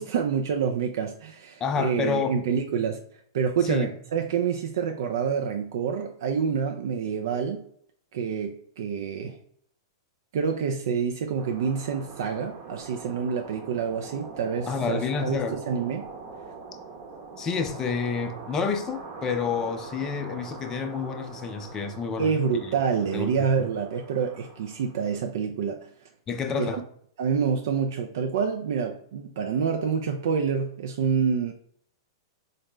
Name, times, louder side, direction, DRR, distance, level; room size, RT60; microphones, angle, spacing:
voice 1, 0.0-3.0 3.3-7.6 8.1-9.4 10.3-16.1 22.2-25.9 26.6-26.8 27.2-31.5, right 6 dB, 65° right, 0.3 m, -27 dB
voice 2, 1.6-2.4 3.6-3.9 14.7-15.6 17.4-22.7 23.1-23.3 26.3-26.8, left 6 dB, 25° left, 0.4 m, -29 dB
sound 1, 11.4-25.2, right 4 dB, 45° right, 0.8 m, -42 dB
3.8 x 2.1 x 3.1 m
hypercardioid pair, 105°, 2 cm